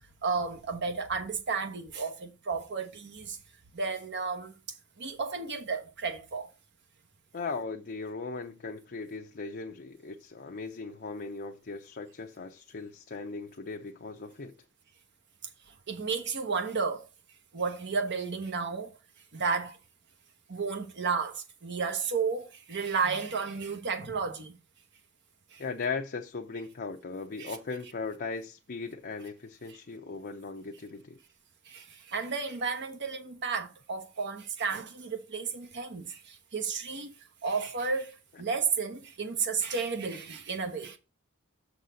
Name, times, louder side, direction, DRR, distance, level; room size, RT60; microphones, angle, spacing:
voice 1, 0.2-3.4 3.7-4.5 5.0-6.5 15.9-17.1 17.5-19.0 19.3-19.8 20.5-24.6 25.5-25.6 27.4-27.6 29.7-29.8 31.7-37.1 37.4-41.0, right 5 dB, 55° right, 1.0 m, -32 dB
voice 2, 7.3-14.5 25.6-31.2, left 4 dB, 45° left, 0.6 m, -38 dB
6.7 x 4.1 x 6.3 m
head